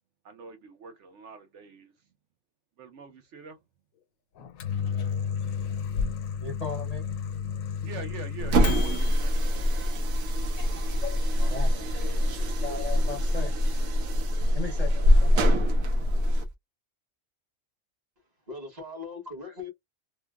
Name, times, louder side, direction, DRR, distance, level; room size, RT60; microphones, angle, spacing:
voice 1, 0.2-1.9 2.8-3.6 7.8-9.3, right 5 dB, 65° right, 0.9 m, -44 dB
Microwave oven, 4.4-9.2, left 7 dB, 85° left, 1.0 m, -32 dB
voice 2, 6.4-7.0 9.1-9.3 9.8-13.5 14.5-15.5, left 4 dB, 35° left, 0.7 m, -39 dB
sound 1, 8.4-16.5, equal, 85° right, 1.2 m, -24 dB
voice 3, 18.2-19.7, left 3 dB, 35° right, 1.1 m, -40 dB
3.2 x 2.2 x 2.2 m
omnidirectional pair, 1.4 m